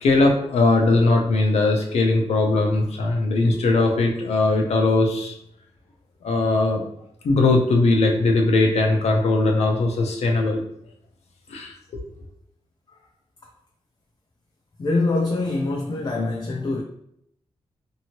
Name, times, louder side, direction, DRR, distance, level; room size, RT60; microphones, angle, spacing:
voice 1, 0.0-5.3 6.2-6.8 7.2-10.6 11.5-12.0, left 2 dB, 90° left, 2 dB, 0.6 m, -20 dB
voice 2, 14.8-16.8, left 2 dB, 40° left, 1 dB, 0.4 m, -24 dB
2.9 x 2.7 x 2.9 m, 0.74 s
wide cardioid pair, 110°, 11 cm